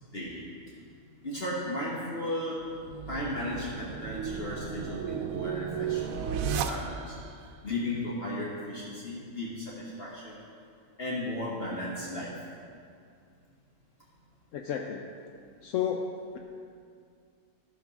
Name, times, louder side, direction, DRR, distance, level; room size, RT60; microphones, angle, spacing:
voice 1, 1.2-2.6 3.0-7.2 7.6-10.4 11.0-12.3, left 1 dB, 50° left, -5 dB, 1.4 m, -35 dB
sound 1, 2.7-7.3, right 7 dB, 85° right, 1.0 m, -34 dB
voice 2, 14.5-15.1 15.6-16.4, left 8 dB, 75° left, 3 dB, 0.9 m, -32 dB
13.0 x 4.7 x 6.0 m, 2.3 s
omnidirectional pair, 1.4 m